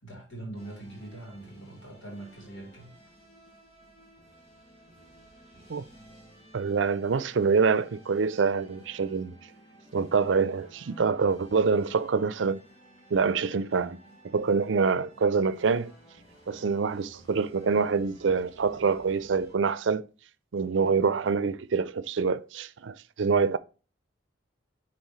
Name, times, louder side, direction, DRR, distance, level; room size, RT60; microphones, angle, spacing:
voice 1, 0.0-2.9, right 2 dB, 85° left, 3.1 m, -42 dB
sound 1, 0.6-19.6, right 1 dB, 30° left, 3.6 m, -55 dB
voice 2, 6.5-9.3 9.9-12.6 13.1-15.9 16.5-20.1 20.5-23.6, right 5 dB, 80° right, 0.5 m, -26 dB
9.6 x 4.3 x 3.1 m
head